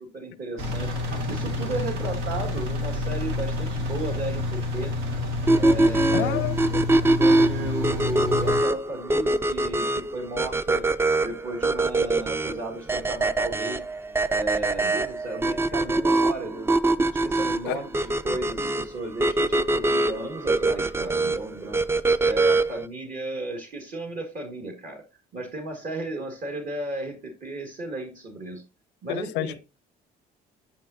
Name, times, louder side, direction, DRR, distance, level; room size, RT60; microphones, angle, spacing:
voice 1, 0.1-0.9 1.3-4.9 5.6-6.4 7.2-10.9 11.2-13.9 14.3-21.8 22.2-25.0 25.3-28.6 29.0-29.6, right 2 dB, 50° right, 1.8 m, -34 dB
Engine, 0.6-8.6, left 2 dB, 90° right, 1.6 m, -29 dB
sound 1, 5.5-22.9, right 2 dB, 15° right, 0.4 m, -23 dB
voice 2, 6.1-6.8 17.6-17.8 29.1-29.6, left 16 dB, 85° left, 0.5 m, -29 dB
9.1 x 5.8 x 2.6 m
cardioid pair, 110°, 17 cm